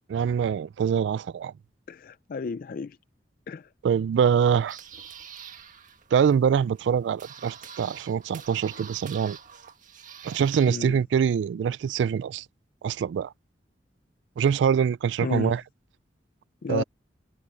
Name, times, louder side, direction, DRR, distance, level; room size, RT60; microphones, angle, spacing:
voice 1, 0.1-1.5 3.8-4.8 6.1-9.4 10.2-12.4 12.8-13.3 14.4-15.6 16.7-16.8, right 7 dB, 85° right, 0.3 m, -24 dB
voice 2, 1.9-3.0 3.5-3.7 10.6-11.0 15.2-15.6 16.6-16.8, left 4 dB, 50° left, 0.4 m, -32 dB
sound 1, 4.3-10.8, right 7 dB, 45° right, 1.9 m, -46 dB
head